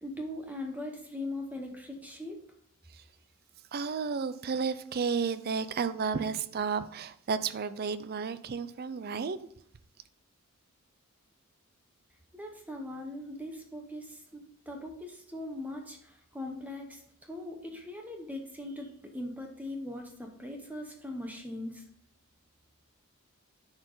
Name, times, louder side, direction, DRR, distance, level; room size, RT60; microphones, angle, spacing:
voice 1, 0.0-2.4 12.3-17.0 17.3-21.8, left 1 dB, 5° right, 0.9 m, -40 dB
voice 2, 3.7-9.4, right 5 dB, 45° right, 0.4 m, -32 dB
10.0 x 4.8 x 3.9 m
head